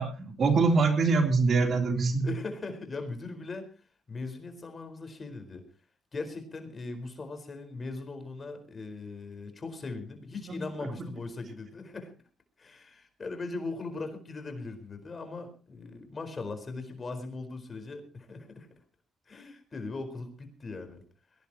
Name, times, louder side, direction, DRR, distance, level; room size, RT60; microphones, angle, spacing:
voice 1, 0.0-2.3 10.6-10.7, right 4 dB, 50° right, 4 dB, 3.4 m, -24 dB
voice 2, 2.2-5.6 6.1-12.1 12.6-18.7 19.3-21.0, left 3 dB, 35° left, 6 dB, 4.6 m, -39 dB
21.5 x 17.5 x 3.0 m, 0.35 s
cardioid pair, 90°, 0 cm